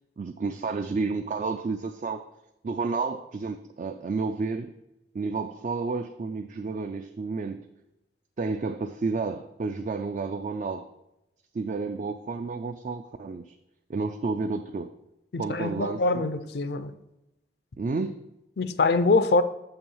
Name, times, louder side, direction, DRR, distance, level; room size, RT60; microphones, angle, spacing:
voice 1, 0.2-2.3 2.6-4.8 5.1-7.7 8.4-10.9 11.5-13.6 13.9-14.9 15.4-16.2 17.8-18.2, right 4 dB, 45° right, 0.3 m, -31 dB
voice 2, 15.3-16.9 18.6-19.4, left 3 dB, 65° left, 0.5 m, -24 dB
7.0 x 5.6 x 5.5 m
head